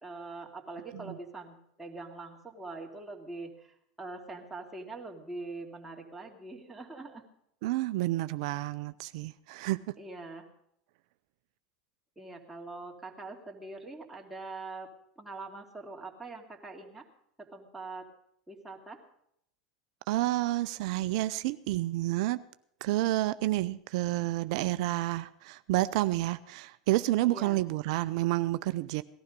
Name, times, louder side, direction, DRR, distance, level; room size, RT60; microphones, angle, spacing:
voice 1, 0.0-7.2 10.0-10.5 12.2-14.9 15.2-17.0 17.4-18.1 18.5-19.0 27.3-27.6, right 3 dB, 5° right, 0 dB, 2.6 m, -43 dB
voice 2, 7.6-9.9 20.1-22.4 22.8-29.0, right 17 dB, 65° right, 13 dB, 0.5 m, -29 dB
18.0 x 12.0 x 5.2 m, 0.74 s
hypercardioid pair, 100°, 3 cm